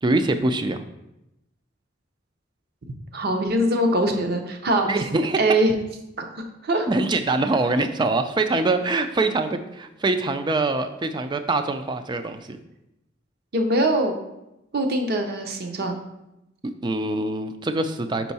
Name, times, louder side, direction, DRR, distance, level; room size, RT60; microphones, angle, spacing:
voice 1, 0.0-0.8 4.8-5.4 6.9-12.6 16.8-18.3, right 2 dB, 20° right, 9 dB, 0.3 m, -24 dB
voice 2, 3.1-4.9 5.4-5.7 6.2-6.3 6.6-6.9 13.5-14.1 14.7-16.0, right 1 dB, 50° right, 4 dB, 0.7 m, -22 dB
5.4 x 4.5 x 4.1 m, 0.89 s
head